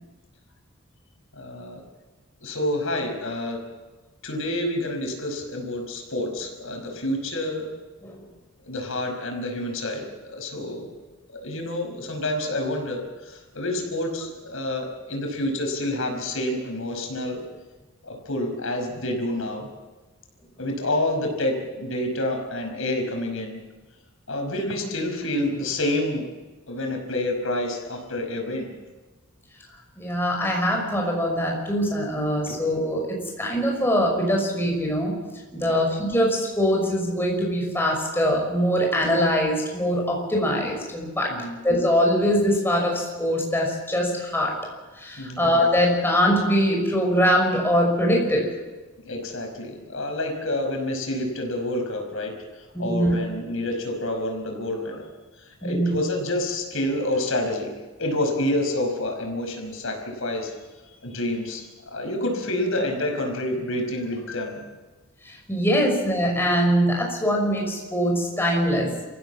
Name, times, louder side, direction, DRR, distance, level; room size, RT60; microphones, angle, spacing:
voice 1, 1.3-1.8 2.4-3.6 4.2-7.7 8.6-10.9 11.4-17.4 18.0-19.7 20.6-23.6 24.3-26.2 26.7-28.7 32.5-32.6 35.6-35.8 41.3-41.6 45.2-45.5 49.1-52.3 52.8-55.0 55.6-57.7 58.0-60.5 61.0-64.6, left 1 dB, 70° left, 3 dB, 5.4 m, -28 dB
voice 2, 30.0-35.2 35.5-41.3 41.6-44.6 45.0-48.5 52.7-53.1 55.6-56.0 65.2-68.9, equal, 10° left, 0 dB, 5.8 m, -22 dB
27.0 x 15.5 x 7.4 m, 1.2 s
head